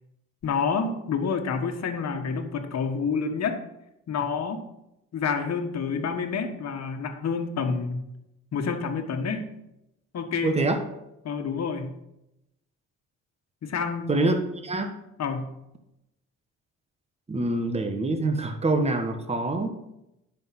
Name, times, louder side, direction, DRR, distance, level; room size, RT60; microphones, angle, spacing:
voice 1, 0.4-3.6 4.1-4.6 5.1-8.0 8.5-9.5 10.1-10.5 11.2-11.9 13.6-14.1 15.2-15.5, left 5 dB, 60° left, 5 dB, 1.5 m, -28 dB
voice 2, 10.4-10.8 14.1-14.9 17.3-19.7, right 2 dB, 20° right, 6 dB, 1.3 m, -25 dB
11.0 x 5.9 x 5.9 m, 0.87 s
cardioid pair, 90°, 30 cm